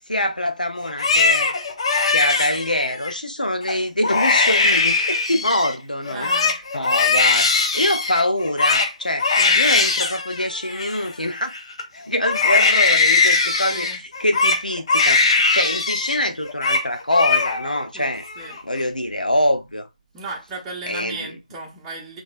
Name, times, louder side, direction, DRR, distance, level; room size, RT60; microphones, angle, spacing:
voice 1, 0.1-1.5 2.1-6.3 6.7-9.3 9.5-11.5 11.9-15.2 15.5-18.2 18.6-19.9 20.9-21.3, left 1 dB, 85° left, 0.9 m, -24 dB
Crying sobbing, 0.8-3.1 3.6-3.8 4.0-5.7 6.1-11.8 12.2-16.2 16.4-16.8 17.1-17.8 18.2-18.8, left 4 dB, 40° left, 0.8 m, -20 dB
voice 2, 6.1-6.5 9.4-9.6 13.7-14.0 17.9-18.6 20.1-22.2, right 2 dB, 10° right, 0.8 m, -35 dB
3.9 x 3.4 x 2.4 m
figure-of-eight pair, 150°, 4 cm